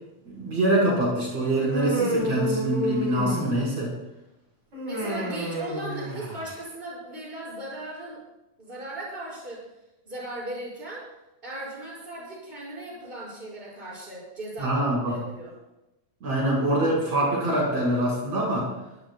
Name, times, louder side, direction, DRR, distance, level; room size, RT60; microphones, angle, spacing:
voice 1, 0.3-3.9 14.6-15.2 16.2-18.7, right 1 dB, 55° right, -5 dB, 6.1 m, -24 dB
Human voice, 1.6-3.8 4.7-6.6, equal, 35° right, 6.7 m, -30 dB
voice 2, 4.8-8.2 8.6-9.6 10.1-11.1 11.4-15.5, right 1 dB, 15° right, -6 dB, 6.4 m, -37 dB
22.0 x 17.0 x 2.3 m, 0.95 s
omnidirectional pair, 3.6 m